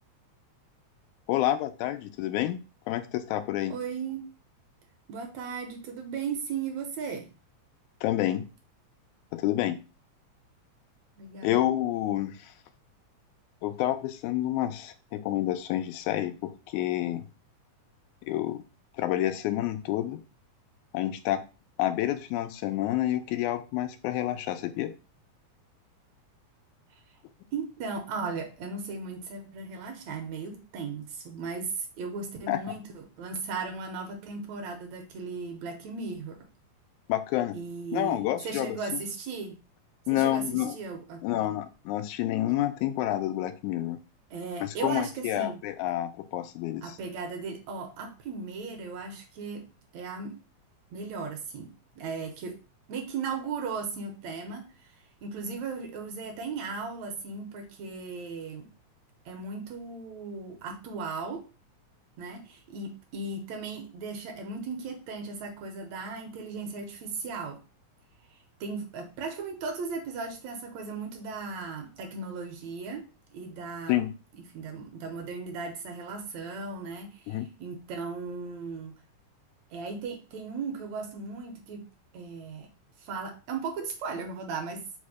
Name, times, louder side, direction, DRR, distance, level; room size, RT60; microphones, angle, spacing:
voice 1, 1.3-2.6 2.9-3.7 8.0-8.5 9.3-9.8 11.4-12.5 13.6-17.3 18.2-18.6 19.0-20.2 20.9-21.4 21.8-24.9 32.5-32.6 37.1-37.6 37.9-38.8 40.1-40.8 41.2-44.0 44.6-47.0 73.9-74.1 77.3-77.5, left 13 dB, 90° left, 9 dB, 2.0 m, -29 dB
voice 2, 3.7-4.2 5.1-7.3 11.2-11.6 27.5-36.4 37.5-39.6 40.1-41.5 44.3-45.6 46.8-49.7 49.9-50.4 50.9-52.6 52.9-54.7 55.2-58.7 59.3-61.4 62.2-67.6 68.6-73.1 73.3-74.1 74.5-78.9 79.7-81.8 82.1-82.7 83.0-84.9, right 4 dB, 70° right, 3 dB, 2.1 m, -36 dB
5.2 x 2.1 x 4.7 m, 0.31 s
omnidirectional pair, 3.3 m